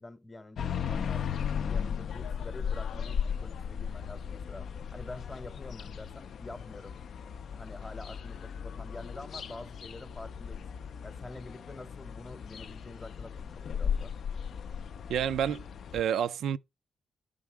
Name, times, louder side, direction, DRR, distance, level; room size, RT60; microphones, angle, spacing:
voice 1, 0.0-1.4 1.7-7.1 7.5-10.7 11.0-14.1, left 2 dB, 25° left, 0.8 m, -47 dB
sound 1, 0.6-16.0, left 7 dB, 70° left, 0.4 m, -36 dB
voice 2, 15.1-15.6 15.9-16.6, right 9 dB, 85° right, 0.4 m, -29 dB
11.0 x 3.7 x 4.5 m
cardioid pair, 65°, 0 cm